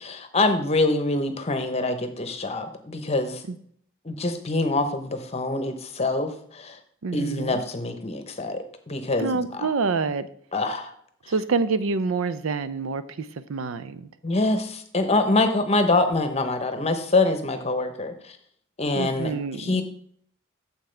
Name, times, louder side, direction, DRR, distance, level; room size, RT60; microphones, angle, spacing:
voice 1, 0.0-3.4 4.0-6.8 7.1-9.7 10.5-10.9 14.2-18.4 18.8-19.3 19.6-19.8, left 2 dB, 30° left, 8 dB, 0.9 m, -25 dB
voice 2, 7.0-7.6 9.2-10.3 11.3-14.1 18.9-19.8, right 4 dB, 75° right, 14 dB, 0.5 m, -27 dB
9.2 x 7.2 x 3.3 m, 0.63 s
head